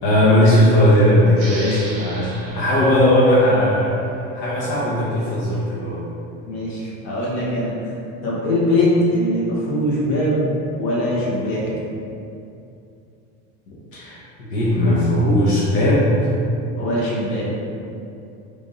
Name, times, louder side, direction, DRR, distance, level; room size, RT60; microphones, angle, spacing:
voice 1, 0.0-3.9 4.3-6.1 13.9-14.2 14.5-16.3, left 1 dB, 75° left, -8 dB, 0.9 m, -17 dB
sound 1, 1.3-4.6, right 2 dB, 45° right, 0.7 m, -38 dB
voice 2, 6.5-7.7 8.2-10.4 10.8-11.6 16.8-17.5, left 1 dB, 55° left, -6 dB, 1.1 m, -21 dB
3.5 x 2.5 x 3.9 m, 2.6 s
cardioid pair, 175°, 34 cm